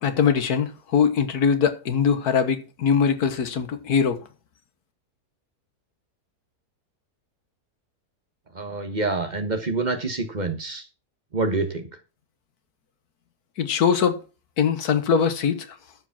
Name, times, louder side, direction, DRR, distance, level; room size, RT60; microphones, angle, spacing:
voice 1, 0.0-4.2 13.6-14.2 14.6-15.7, left 7 dB, 70° left, 1.7 m, -22 dB
voice 2, 8.5-10.8 11.3-11.9, right 3 dB, 30° right, 1.3 m, -26 dB
13.0 x 5.0 x 5.8 m
omnidirectional pair, 1.7 m